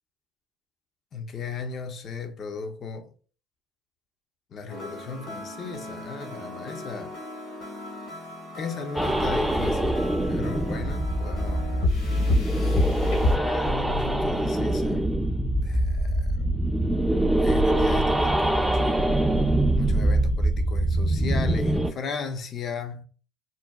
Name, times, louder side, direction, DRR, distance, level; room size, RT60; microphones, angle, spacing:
voice 1, 1.1-3.1 4.5-7.2 8.6-11.7 12.4-12.9 13.2-15.0 15.6-16.5 17.4-19.0 19.8-23.0, left 5 dB, 45° left, 0.6 m, -36 dB
sound 1, 4.7-13.4, left 1 dB, 65° left, 1.4 m, -30 dB
sound 2, 9.0-21.9, right 1 dB, 5° right, 0.4 m, -24 dB
3.8 x 2.2 x 2.2 m
hypercardioid pair, 70°, 0 cm